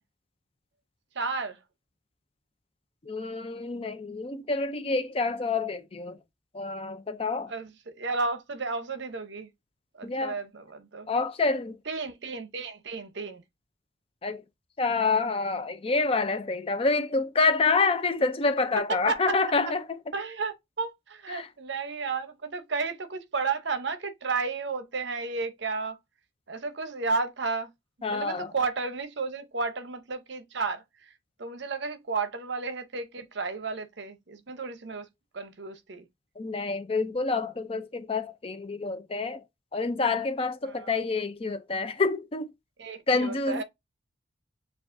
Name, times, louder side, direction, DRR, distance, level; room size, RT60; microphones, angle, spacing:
voice 1, 1.2-1.6 7.5-7.7 8.0-9.5 10.0-11.1 11.9-13.4 19.1-19.3 20.1-26.0 26.5-27.7 28.1-30.8 31.4-35.1 35.3-36.1 40.6-40.9 42.8-43.6, right 4 dB, 60° right, 0.7 m, -32 dB
voice 2, 3.0-6.2 6.5-7.5 10.0-10.4 11.1-11.8 14.2-14.4 14.8-20.1 21.3-21.5 28.0-28.5 36.4-39.4 39.7-42.5 43.1-43.6, left 3 dB, 30° left, 0.4 m, -27 dB
7.0 x 2.4 x 2.5 m
head